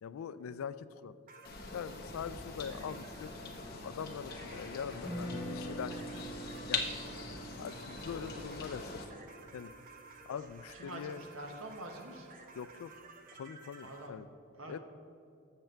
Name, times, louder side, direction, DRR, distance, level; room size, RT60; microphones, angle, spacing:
voice 1, 0.0-1.2 1.7-3.6 3.8-6.2 6.7-6.9 7.6-9.2 9.5-9.7 10.3-11.2 12.6-12.9 13.3-14.3 14.7-14.8, left 7 dB, 80° left, 15 dB, 0.3 m, -43 dB
sound 1, 1.3-14.1, right 3 dB, 40° right, 0.7 m, -56 dB
sound 2, 1.4-9.0, left 4 dB, 45° left, 1.0 m, -42 dB
Guitar, 4.9-11.0, equal, 10° right, 1.8 m, -45 dB
voice 2, 10.7-12.3 13.8-14.1 14.6-14.8, right 2 dB, 75° right, 3 dB, 1.2 m, -46 dB
7.7 x 6.6 x 4.5 m, 2.5 s
head